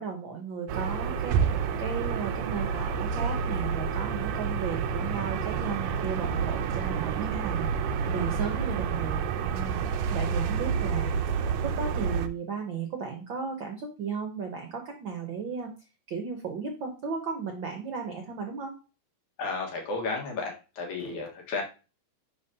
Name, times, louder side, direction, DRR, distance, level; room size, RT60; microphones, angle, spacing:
voice 1, 0.0-1.4 1.8-7.7 8.1-9.8 10.1-11.1 11.6-15.7 16.1-18.8, right 6 dB, 70° right, 3 dB, 1.1 m, -35 dB
sound 1, 0.7-12.3, right 6 dB, 85° right, 1.5 m, -29 dB
voice 2, 19.4-21.6, left 4 dB, 70° left, 0 dB, 2.9 m, -33 dB
10.5 x 3.7 x 2.8 m, 0.32 s
omnidirectional pair, 3.5 m